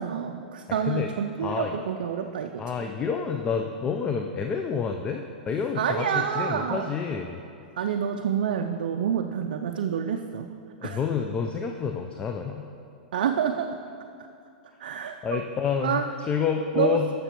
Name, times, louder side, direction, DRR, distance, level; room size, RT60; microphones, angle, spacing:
voice 1, 0.0-2.9 5.8-6.9 7.8-10.5 10.8-11.0 13.1-13.8 14.8-15.4 15.8-16.1 16.8-17.0, right 8 dB, 70° right, 5 dB, 0.4 m, -28 dB
voice 2, 1.4-1.8 2.6-7.4 10.8-12.7 15.2-17.1, left 6 dB, 20° left, 4 dB, 0.5 m, -28 dB
13.0 x 6.6 x 3.0 m, 2.5 s
hypercardioid pair, 110°, 5 cm